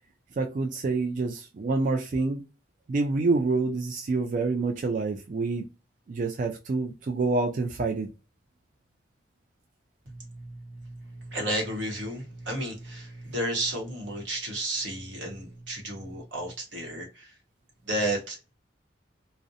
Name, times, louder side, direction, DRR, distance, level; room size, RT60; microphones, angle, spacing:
voice 1, 0.4-2.4 2.9-5.6 6.1-8.1, right 3 dB, 45° right, 0.3 m, -27 dB
voice 2, 10.1-17.3 17.9-18.5, right 1 dB, 85° right, 1.0 m, -33 dB
2.4 x 2.0 x 2.6 m
head